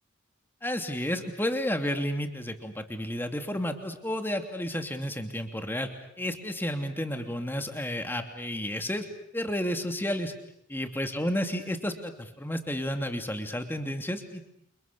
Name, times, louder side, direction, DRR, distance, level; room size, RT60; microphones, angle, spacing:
voice 1, 0.6-5.9 6.2-9.1 9.3-10.3 10.7-14.5, equal, 10° left, 5 dB, 2.9 m, -31 dB
29.5 x 28.5 x 7.0 m, 0.72 s
head